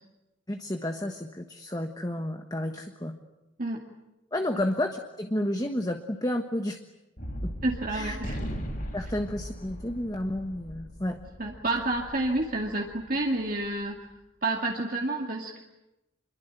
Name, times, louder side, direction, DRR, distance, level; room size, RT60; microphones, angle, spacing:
voice 1, 0.5-3.2 4.3-6.8 7.4-7.5 7.9-8.2 8.9-11.2, left 1 dB, 20° left, 5 dB, 1.4 m, -31 dB
Gunshot gunfire, 7.2-13.7, equal, 45° left, 6.3 m, -38 dB
voice 2, 7.6-8.4 11.4-14.0 14.4-15.6, right 2 dB, 45° right, 0 dB, 2.4 m, -29 dB
27.5 x 22.5 x 9.3 m, 0.95 s
head